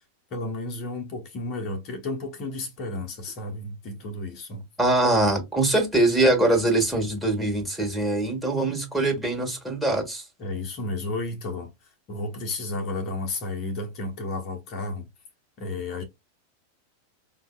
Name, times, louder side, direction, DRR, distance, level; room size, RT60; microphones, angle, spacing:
voice 1, 0.3-4.7 10.4-15.1 15.6-16.0, left 2 dB, 35° left, 1.0 m, -32 dB
voice 2, 4.8-10.3, right 2 dB, 5° right, 1.5 m, -23 dB
5.5 x 2.7 x 2.2 m
figure-of-eight pair, 90°, 0 cm